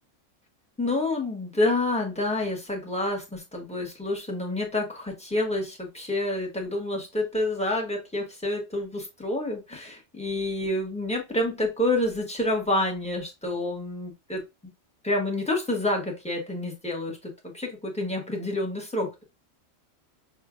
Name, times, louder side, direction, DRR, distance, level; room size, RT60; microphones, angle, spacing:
voice 1, 0.8-14.4 15.0-19.2, left 1 dB, 5° left, -1 dB, 1.1 m, -28 dB
6.2 x 2.5 x 2.4 m, 0.25 s
omnidirectional pair, 1.4 m